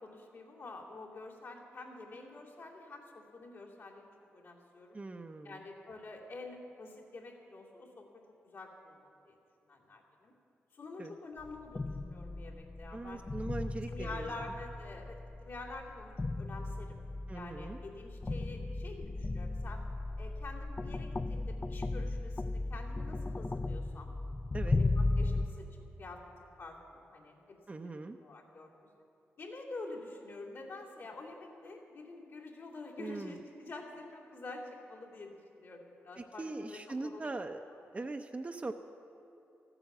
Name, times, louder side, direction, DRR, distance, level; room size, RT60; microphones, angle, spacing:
voice 1, 0.0-5.0 5.4-9.4 9.7-10.3 10.7-13.2 13.9-17.0 17.3-19.8 20.2-24.1 24.8-27.8 28.2-28.7 29.4-37.2, left 2 dB, 70° left, -5 dB, 2.7 m, -47 dB
voice 2, 4.9-5.6 11.0-11.1 12.9-14.3 17.3-17.8 24.5-24.8 27.7-28.2 33.0-33.4 36.2-37.6 37.9-38.7, right 2 dB, 30° right, 5 dB, 0.6 m, -41 dB
sound 1, 11.4-25.5, left 2 dB, 25° left, 0.4 m, -36 dB
14.0 x 9.0 x 7.2 m, 2.9 s
cardioid pair, 65°, 5 cm